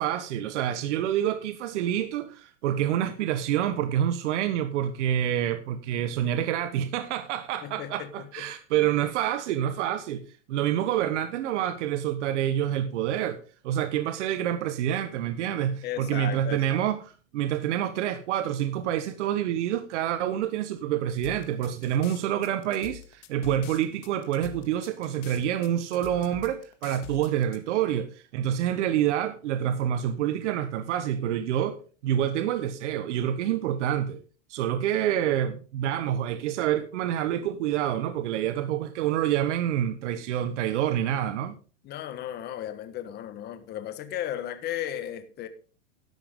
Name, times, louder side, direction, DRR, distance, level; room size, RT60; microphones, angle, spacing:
voice 1, 0.0-10.2 10.5-13.4 13.6-17.0 17.3-31.8 32.0-34.2 34.5-41.6, right 11 dB, 70° right, 1.2 m, -27 dB
voice 2, 7.6-8.5 15.8-16.8 41.8-45.5, left 11 dB, 25° left, 1.3 m, -35 dB
sound 1, 21.2-27.6, left 12 dB, 70° left, 1.9 m, -45 dB
13.0 x 11.0 x 3.7 m
supercardioid pair, 155°, 37 cm